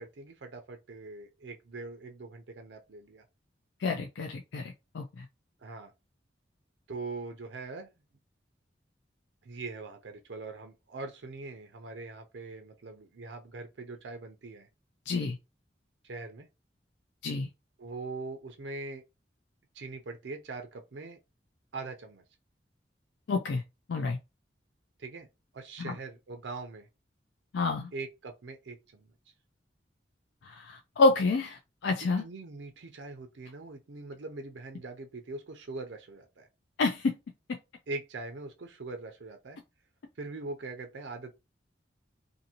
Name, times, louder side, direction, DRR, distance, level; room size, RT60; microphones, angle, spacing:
voice 1, 0.0-3.2 5.6-5.9 6.9-7.9 9.4-14.7 16.0-16.5 17.8-19.0 19.7-21.2 21.7-22.2 25.0-25.3 25.5-26.9 27.9-29.1 32.0-36.5 37.9-39.6 40.2-41.4, right 3 dB, 80° right, 0.5 m, -42 dB
voice 2, 3.8-5.3 15.1-15.4 17.2-17.5 23.3-23.6 23.9-24.2 25.8-25.9 27.5-27.9 30.4-32.2 36.8-37.1 37.5-37.6, left 3 dB, 75° left, 0.4 m, -28 dB
2.6 x 2.5 x 2.8 m
head